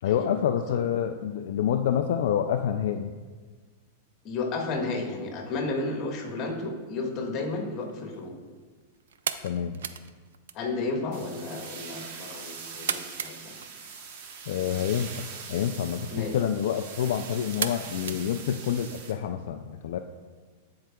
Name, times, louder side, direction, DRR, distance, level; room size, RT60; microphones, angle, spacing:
voice 1, 0.0-3.1 9.4-9.8 14.5-20.0, left 9 dB, 70° left, 6 dB, 0.3 m, -28 dB
voice 2, 4.2-8.3 10.5-13.6 16.1-16.4, left 3 dB, 35° left, 1 dB, 1.4 m, -32 dB
sound 1, 7.7-19.1, right 8 dB, 90° right, 0.3 m, -40 dB
sound 2, 11.1-19.1, right 5 dB, 60° right, 0.9 m, -42 dB
14.0 x 4.7 x 2.3 m, 1.4 s
supercardioid pair, 135°, 0 cm